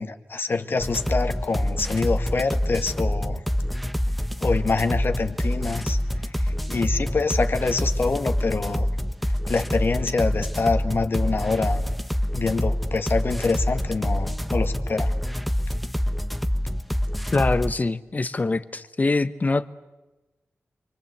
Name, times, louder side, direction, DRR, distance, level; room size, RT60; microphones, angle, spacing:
voice 1, 0.0-3.4 4.4-8.9 9.5-11.8 12.3-15.2, left 4 dB, 55° left, 7 dB, 1.9 m, -26 dB
sound 1, 0.8-17.7, equal, ahead, 0.9 m, -26 dB
voice 2, 17.3-19.7, left 3 dB, 35° left, 13 dB, 1.2 m, -24 dB
27.5 x 24.0 x 8.2 m, 1.1 s
wide cardioid pair, 95°, 5 cm